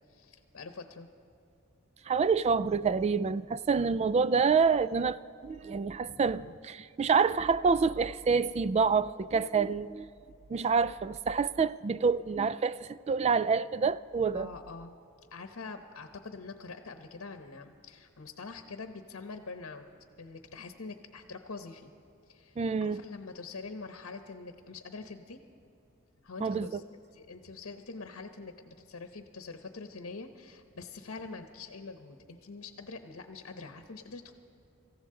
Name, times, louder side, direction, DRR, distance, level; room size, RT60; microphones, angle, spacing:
voice 1, 0.1-1.1 6.0-6.6 14.3-15.0 15.3-19.8 20.2-21.9 22.3-25.4 26.2-26.8 27.1-34.3, left 4 dB, 75° left, 0.9 m, -45 dB
voice 2, 2.1-10.1 10.5-14.5 22.6-23.0 26.4-26.8, right 5 dB, 30° right, 0.3 m, -27 dB
26.0 x 15.0 x 3.8 m
head